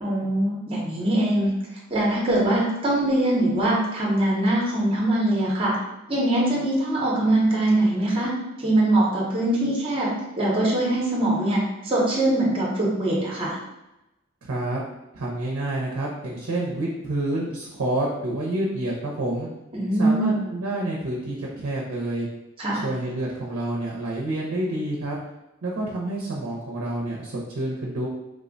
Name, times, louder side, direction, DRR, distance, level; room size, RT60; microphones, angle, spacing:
voice 1, 0.0-1.5 1.9-5.8 6.1-8.3 8.6-10.1 10.4-13.6 19.7-20.4 22.6-22.8, right 1 dB, 25° right, -4 dB, 0.6 m, -22 dB
voice 2, 14.5-14.8 15.1-19.5 20.0-22.3 22.7-25.2 25.6-28.1, right 1 dB, 80° right, -2 dB, 0.5 m, -28 dB
3.3 x 2.1 x 2.5 m, 0.95 s
head